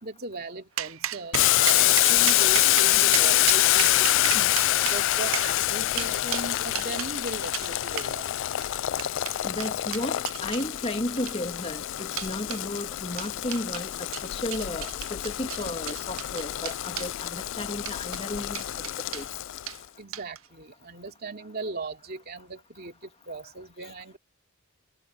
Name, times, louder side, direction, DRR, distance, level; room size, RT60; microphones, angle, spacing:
voice 1, 0.0-4.5 4.9-8.3 20.0-24.2, right 3 dB, 45° right, 2.8 m, -38 dB
sound 1, 0.8-7.1 7.5-7.7 8.0-8.1 8.6-10.7 11.1-11.6 12.2-12.6 13.2-13.9 14.1-17.1 17.8-18.2 18.5-19.3 19.7-19.8 20.1-20.5, right 12 dB, 65° right, 0.7 m, -34 dB
Boiling, 1.3-19.8, left 15 dB, 55° left, 0.3 m, -26 dB
voice 2, 9.4-18.6 19.1-19.3, left 1 dB, 25° left, 2.7 m, -34 dB
head